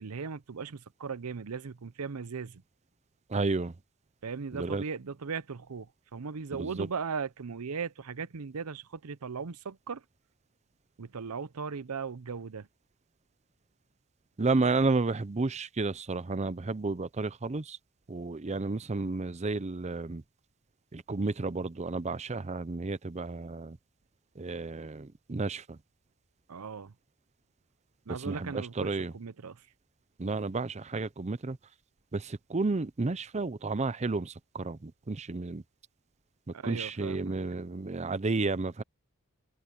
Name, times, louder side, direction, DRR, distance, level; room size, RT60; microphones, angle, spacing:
voice 1, 0.0-2.6 4.2-10.0 11.0-12.7 26.5-26.9 28.1-29.6 36.5-37.3, right 5 dB, 80° right, 0.7 m, -38 dB
voice 2, 3.3-3.7 4.5-4.8 6.5-6.9 14.4-17.8 18.1-20.2 20.9-23.8 24.4-25.8 28.2-29.1 30.2-31.6 32.1-35.6 36.6-38.8, right 3 dB, 30° right, 0.6 m, -32 dB
head